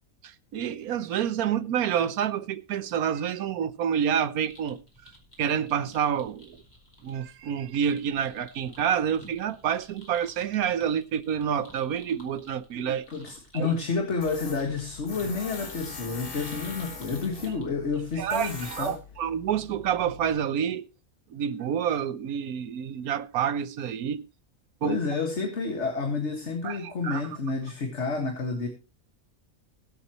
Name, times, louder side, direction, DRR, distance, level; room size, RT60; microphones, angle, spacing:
voice 1, 0.2-5.1 5.4-6.6 7.0-13.0 13.5-13.7 18.2-20.9 21.3-24.3 24.8-25.0 26.6-27.2, right 8 dB, 90° right, 1.3 m, -28 dB
sound 1, 4.4-18.7, equal, 15° left, 4.7 m, -54 dB
voice 2, 13.1-18.9 24.8-28.7, left 4 dB, 50° left, 2.1 m, -30 dB
Tools, 14.2-20.4, left 4 dB, 85° left, 3.0 m, -42 dB
21.5 x 8.3 x 3.0 m
omnidirectional pair, 1.5 m